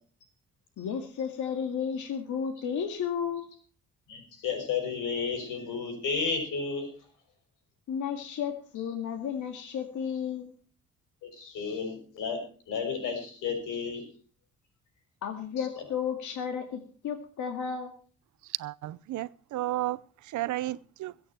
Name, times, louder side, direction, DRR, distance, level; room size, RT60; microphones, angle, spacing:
voice 1, 0.8-3.5 7.9-10.5 15.2-17.9, left 7 dB, 75° left, 2.2 m, -33 dB
voice 2, 4.1-6.9 11.3-12.4 12.7-14.0, left 5 dB, 90° left, 6.2 m, -32 dB
voice 3, 18.6-20.0 20.3-21.1, right 16 dB, 75° right, 0.7 m, -33 dB
22.5 x 8.6 x 4.4 m
cardioid pair, 90°, 30 cm